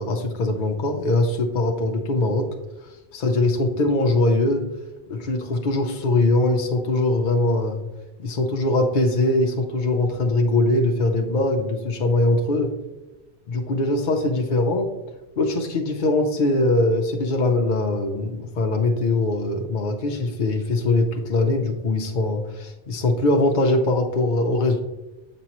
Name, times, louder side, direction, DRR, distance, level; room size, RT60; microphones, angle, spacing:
voice 1, 0.0-2.5 3.1-4.7 5.1-7.8 8.2-12.7 13.5-14.9 15.4-24.8, left 2 dB, 50° left, 2 dB, 0.7 m, -22 dB
7.4 x 5.3 x 2.9 m, 1.1 s
omnidirectional pair, 1.1 m